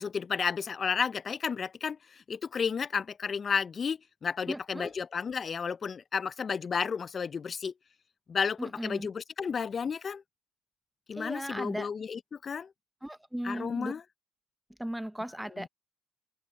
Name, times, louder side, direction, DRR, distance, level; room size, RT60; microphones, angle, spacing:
voice 1, 0.0-7.7 8.3-10.2 11.1-12.7 13.4-14.0 15.6-15.7, left 6 dB, 40° left, 0.9 m, -32 dB
voice 2, 4.5-4.9 8.6-9.1 11.2-11.9 13.0-13.9 14.8-15.7, right 1 dB, 5° right, 0.9 m, -37 dB
open air
hypercardioid pair, 65°, 0 cm